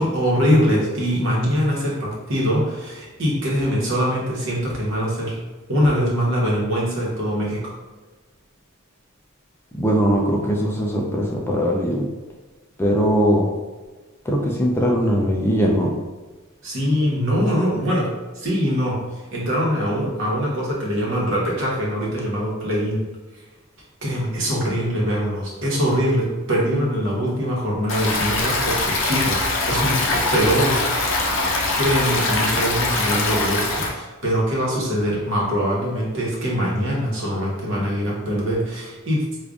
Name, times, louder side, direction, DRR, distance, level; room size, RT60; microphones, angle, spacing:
voice 1, 0.0-5.4 5.7-7.6 16.6-18.1 18.3-19.0 19.3-23.0 24.0-30.8 31.8-39.2, equal, 65° right, -4 dB, 1.0 m, -22 dB
voice 2, 9.8-12.1 12.8-13.5 14.3-15.9, equal, 10° left, -2 dB, 0.4 m, -20 dB
Stream, 27.9-33.9, left 2 dB, 65° left, 0.6 m, -22 dB
4.8 x 2.4 x 2.4 m, 1.3 s
head